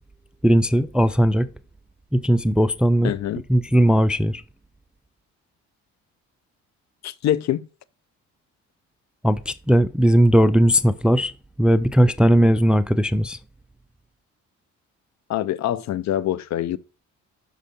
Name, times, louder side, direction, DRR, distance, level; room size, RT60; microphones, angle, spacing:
voice 1, 0.4-1.5 2.1-3.1 3.5-4.4 9.2-11.3 11.6-13.4, equal, 5° right, 0.3 m, -18 dB
voice 2, 3.0-3.4 7.0-7.7 15.3-16.8, left 12 dB, 65° left, 0.6 m, -24 dB
6.2 x 5.6 x 5.2 m
cardioid pair, 90°, 30 cm